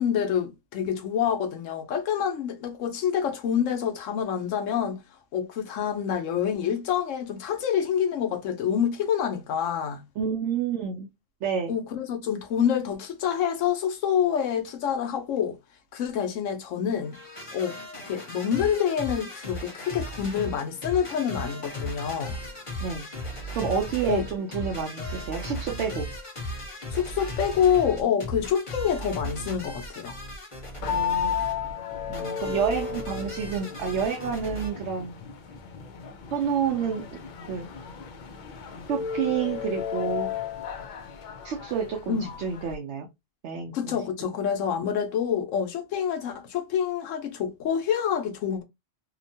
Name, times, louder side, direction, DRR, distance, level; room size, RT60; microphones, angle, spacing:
voice 1, 0.0-5.0 5.3-10.0 11.7-15.6 15.9-17.2 17.5-17.8 18.1-22.4 24.1-24.2 26.9-30.1 42.1-42.3 43.7-48.6, left 8 dB, 85° left, 1.0 m, -27 dB
voice 2, 10.2-11.1 11.4-11.8 22.8-23.1 23.6-26.1 30.9-31.3 32.1-35.2 36.3-37.2 37.5-37.7 38.9-40.3 41.4-43.1 43.4-44.3, right 7 dB, 70° right, 0.8 m, -29 dB
sound 1, 17.0-34.7, equal, 30° left, 0.9 m, -37 dB
sound 2, 30.8-42.7, left 8 dB, 65° left, 0.5 m, -34 dB
2.8 x 2.1 x 2.6 m
omnidirectional pair, 1.3 m